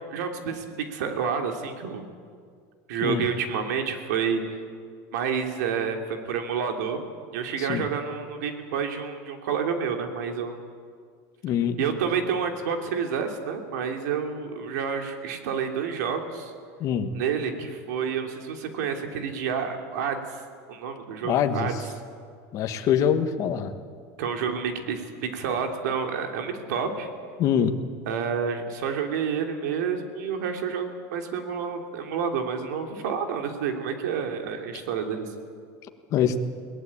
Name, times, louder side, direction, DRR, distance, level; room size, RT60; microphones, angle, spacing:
voice 1, 0.1-2.0 2.9-4.6 5.1-7.0 7.3-10.6 11.8-16.5 17.1-20.2 20.7-21.7 24.2-27.1 28.1-35.3, right 6 dB, 85° right, 4 dB, 3.1 m, -29 dB
voice 2, 11.4-11.8 16.8-17.1 21.2-21.9 22.5-23.7 27.4-27.8 36.1-36.3, left 8 dB, 35° left, 7 dB, 1.5 m, -24 dB
22.0 x 18.5 x 8.7 m, 2.1 s
supercardioid pair, 160°, 9 cm